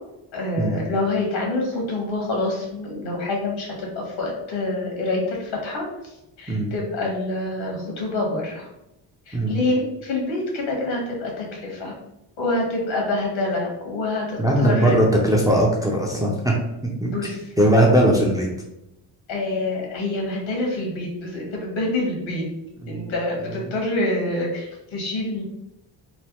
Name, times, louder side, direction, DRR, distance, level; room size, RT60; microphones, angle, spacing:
voice 1, 0.3-6.1 6.4-8.7 9.3-11.9 12.4-15.0 17.0-17.5 19.3-22.4 22.9-25.4, left 2 dB, 80° left, -1 dB, 1.2 m, -26 dB
voice 2, 9.3-9.6 14.4-16.5 17.0-17.1 17.6-18.5 22.8-23.1 23.5-23.6, right 1 dB, 10° right, -2 dB, 0.4 m, -19 dB
3.1 x 2.0 x 2.9 m, 0.88 s
cardioid pair, 105°, 47 cm